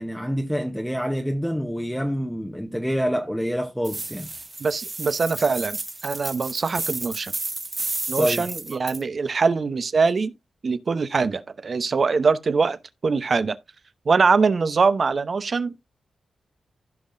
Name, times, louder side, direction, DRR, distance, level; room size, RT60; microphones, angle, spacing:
voice 1, 0.0-4.3 8.2-8.5, equal, ahead, 0.9 m, -26 dB
sound 1, 3.8-9.0, right 2 dB, 30° right, 1.6 m, -32 dB
voice 2, 4.6-7.3 8.1-10.3 10.6-12.8 13.0-13.6 14.0-15.7, right 4 dB, 55° right, 0.8 m, -23 dB
15.5 x 5.5 x 2.6 m
cardioid pair, 65°, 0 cm